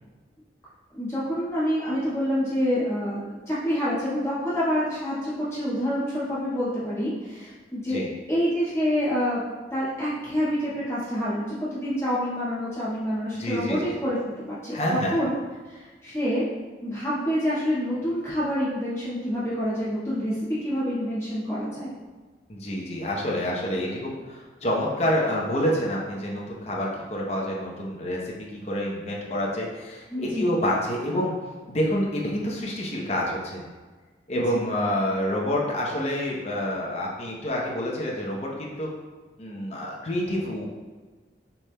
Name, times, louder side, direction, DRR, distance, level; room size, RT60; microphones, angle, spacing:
voice 1, 0.9-8.0 8.3-9.4 9.7-14.8 15.1-15.3 15.7-16.4 16.8-21.9 30.1-30.5 34.3-34.6, equal, 15° left, -11 dB, 1.3 m, -27 dB
voice 2, 13.3-13.8 14.7-15.2 22.5-31.3 31.7-33.6 34.3-38.9 39.4-40.6, equal, 35° left, -2 dB, 0.7 m, -28 dB
6.8 x 3.4 x 2.2 m, 1.3 s
head